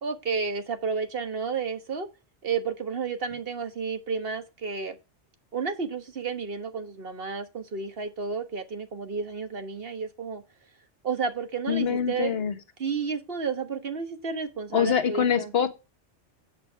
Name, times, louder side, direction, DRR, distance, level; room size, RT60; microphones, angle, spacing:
voice 1, 0.0-2.1 2.4-4.9 5.5-10.4 11.0-12.3 12.8-15.5, right 5 dB, 50° right, 1.5 m, -31 dB
voice 2, 11.7-12.6 14.7-15.7, left 8 dB, 55° left, 1.3 m, -24 dB
8.7 x 5.0 x 5.7 m
omnidirectional pair, 1.2 m